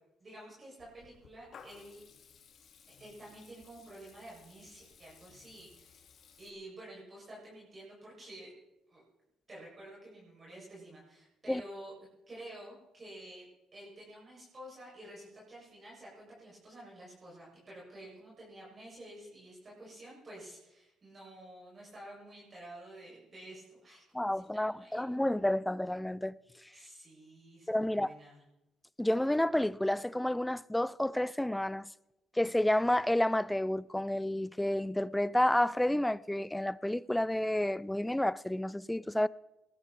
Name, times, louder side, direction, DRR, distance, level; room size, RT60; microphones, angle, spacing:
voice 1, 0.2-2.0 2.9-6.0 6.4-8.5 8.9-9.0 9.5-11.9 12.3-13.5 13.7-24.0 24.3-25.0 26.7-28.4, right 1 dB, 30° right, 7.5 m, -50 dB
Water tap faucet / Liquid, 0.8-6.5, left 6 dB, 55° left, 2.3 m, -58 dB
voice 2, 24.1-26.3 27.7-28.1 29.0-31.9 32.4-39.3, left 1 dB, 5° left, 0.4 m, -30 dB
20.0 x 14.0 x 4.6 m
cardioid pair, 105°, 0 cm